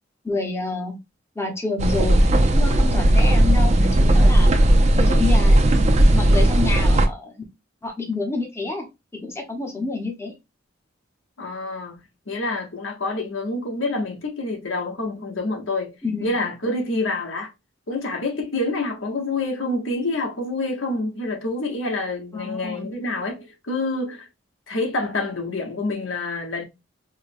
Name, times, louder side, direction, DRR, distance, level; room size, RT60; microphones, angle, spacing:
voice 1, 0.2-1.0 1.4-2.3 2.5-4.5 5.0-7.4 7.8-8.9 9.1-10.3 16.0-16.3 22.3-22.9, left 3 dB, 15° left, 0.8 m, -28 dB
sound 1, 1.8-7.1, right 1 dB, 35° right, 0.5 m, -16 dB
voice 2, 11.4-15.9 16.2-17.5 17.9-24.3 24.7-26.6, left 2 dB, 75° left, 1.0 m, -27 dB
4.7 x 2.2 x 2.6 m
head